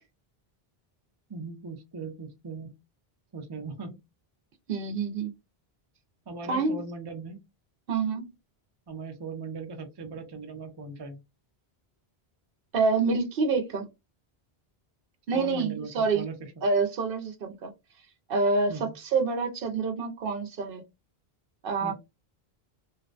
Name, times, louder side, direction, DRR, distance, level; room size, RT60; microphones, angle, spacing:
voice 1, 1.3-2.8 3.3-4.0 6.3-7.4 8.9-11.2 15.3-16.6 18.7-18.9 21.8-21.9, right 4 dB, 35° right, 0.5 m, -39 dB
voice 2, 4.7-5.3 6.5-6.8 7.9-8.2 12.7-13.9 15.3-16.2 16.6-17.7 18.3-20.8 21.6-21.9, right 4 dB, 65° right, 0.7 m, -27 dB
2.5 x 2.1 x 2.4 m
omnidirectional pair, 1.1 m